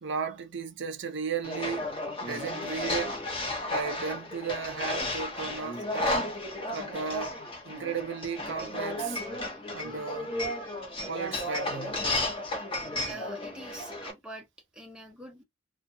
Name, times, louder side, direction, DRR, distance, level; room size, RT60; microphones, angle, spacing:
voice 1, 0.0-1.9 2.2-3.3 3.7-6.4 6.7-9.2 9.7-10.3 11.1-12.0, right 6 dB, 60° right, 0.5 m, -35 dB
sound 1, 1.4-14.1, left 1 dB, 25° left, 0.8 m, -33 dB
voice 2, 13.0-14.5 14.7-15.4, right 2 dB, 5° right, 0.7 m, -44 dB
2.7 x 2.2 x 2.6 m
head